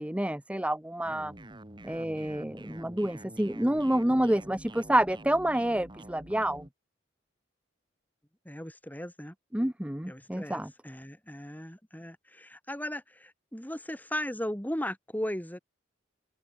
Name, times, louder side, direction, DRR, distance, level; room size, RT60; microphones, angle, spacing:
voice 1, 0.0-1.3 1.8-6.6 9.5-10.7, right 1 dB, 5° right, 0.9 m, -28 dB
sound 1, 1.0-6.7, right 1 dB, 25° right, 3.0 m, -47 dB
voice 2, 8.4-9.3 10.1-15.6, left 1 dB, 10° left, 6.5 m, -37 dB
head